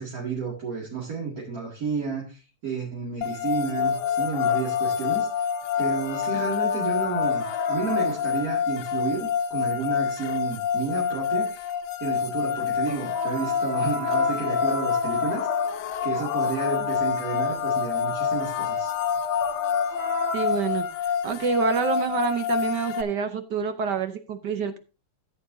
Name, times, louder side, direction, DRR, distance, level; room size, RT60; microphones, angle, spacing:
voice 1, 0.0-5.3 5.8-11.7 12.0-15.5 16.0-18.9, right 5 dB, 45° right, -3 dB, 2.5 m, -31 dB
sound 1, 3.2-23.0, left 7 dB, 80° left, 1.6 m, -27 dB
sound 2, 3.8-8.5 12.9-21.1 22.4-22.5, left 4 dB, 60° left, 1.4 m, -32 dB
voice 2, 20.3-24.8, right 5 dB, 65° right, 9 dB, 1.2 m, -27 dB
14.0 x 8.1 x 2.6 m, 0.33 s
omnidirectional pair, 2.4 m